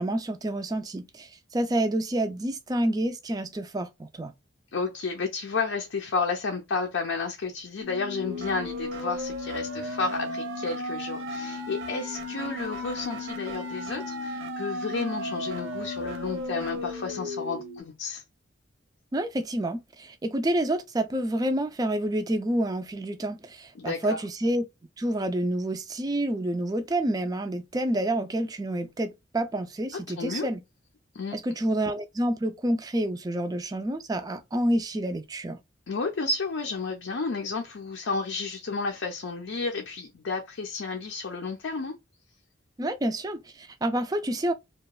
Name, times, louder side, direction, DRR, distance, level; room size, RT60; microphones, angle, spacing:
voice 1, 0.0-4.3 19.1-24.7 25.0-30.6 31.3-35.6 42.8-44.5, right 1 dB, 20° right, 0.3 m, -28 dB
voice 2, 4.7-18.2 23.8-24.2 29.9-30.5 31.1-31.4 35.9-42.0, left 4 dB, 75° left, 0.5 m, -31 dB
sound 1, 7.8-17.8, left 1 dB, 80° right, 0.7 m, -35 dB
2.9 x 2.2 x 2.2 m
head